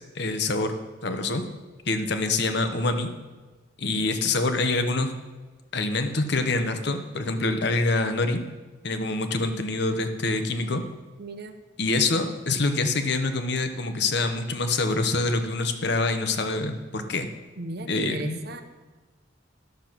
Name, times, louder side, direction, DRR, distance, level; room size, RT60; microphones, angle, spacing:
voice 1, 0.1-0.7 1.0-1.4 1.9-3.1 3.8-5.1 5.7-8.4 8.8-10.8 11.8-17.3 17.9-18.4, left 3 dB, 60° left, 7 dB, 1.0 m, -25 dB
voice 2, 11.2-11.5 17.6-18.6, right 2 dB, 55° right, 8 dB, 0.8 m, -36 dB
11.5 x 6.8 x 6.0 m, 1.3 s
head